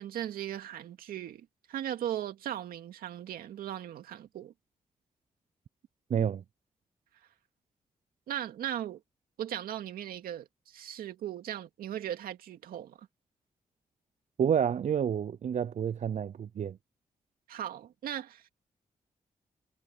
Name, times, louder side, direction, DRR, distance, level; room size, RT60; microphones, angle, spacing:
voice 1, 0.0-4.5 8.3-9.0 9.4-13.1 17.5-18.5, right 11 dB, 85° right, 2.4 m, -38 dB
voice 2, 6.1-6.4 14.4-16.8, right 8 dB, 55° right, 0.5 m, -29 dB
supercardioid pair, 50°, 15 cm